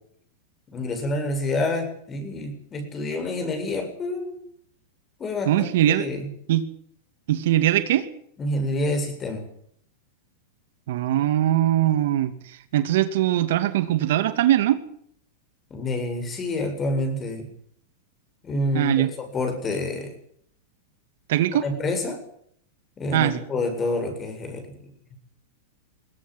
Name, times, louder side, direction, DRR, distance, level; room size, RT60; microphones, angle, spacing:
voice 1, 0.7-4.4 5.2-6.3 8.4-9.5 15.7-17.5 18.4-20.1 21.6-22.2 23.0-24.8, left 2 dB, 20° left, 7 dB, 7.6 m, -28 dB
voice 2, 5.4-6.1 6.5-6.6 7.3-8.1 10.9-14.8 18.7-19.1 21.3-21.6 23.1-23.4, right 13 dB, 70° right, 11 dB, 2.4 m, -21 dB
21.0 x 17.5 x 9.3 m, 0.66 s
hypercardioid pair, 130°, 0 cm